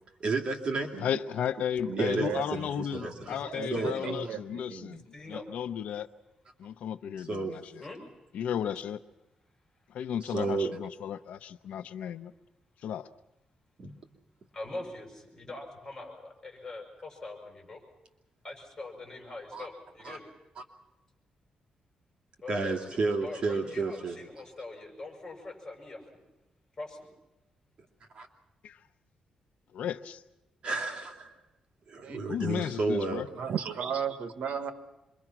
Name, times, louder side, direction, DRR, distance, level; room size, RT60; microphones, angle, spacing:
voice 1, 0.2-0.9 2.0-3.4 3.7-3.9 4.2-4.3 7.2-7.5 10.2-10.7 13.8-13.9 19.5-19.7 20.0-20.2 20.6-20.7 22.5-24.2 28.1-28.3 30.6-31.3 31.9-33.2, right 3 dB, 45° right, 1 dB, 2.7 m, -31 dB
voice 2, 1.0-6.1 6.6-7.8 8.3-9.0 9.9-12.3 12.8-13.1 28.6-28.8 29.7-30.2 32.3-33.3, left 9 dB, 85° left, 12 dB, 0.7 m, -34 dB
voice 3, 1.9-2.4 3.4-5.0 32.0-32.4 33.3-34.7, right 7 dB, 75° right, 10 dB, 1.4 m, -35 dB
voice 4, 3.0-4.2 5.1-5.4 7.8-8.0 14.5-17.8 18.4-20.3 22.4-26.2 26.8-27.1, left 2 dB, 20° left, 2 dB, 7.4 m, -43 dB
26.5 x 23.0 x 6.0 m, 1.0 s
cardioid pair, 130°, 2 cm